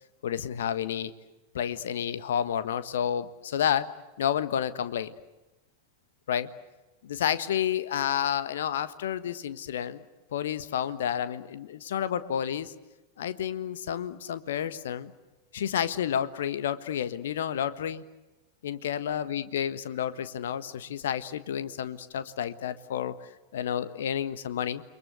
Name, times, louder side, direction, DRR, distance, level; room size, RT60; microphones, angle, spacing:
voice 1, 0.2-1.1 1.5-3.9 4.2-5.1 6.3-6.5 7.0-10.0 10.3-12.7 13.2-15.1 15.5-18.0 18.6-23.1 23.5-24.8, left 9 dB, 60° left, 14 dB, 1.4 m, -30 dB
29.5 x 24.0 x 8.2 m, 1.0 s
figure-of-eight pair, 90°, 0 cm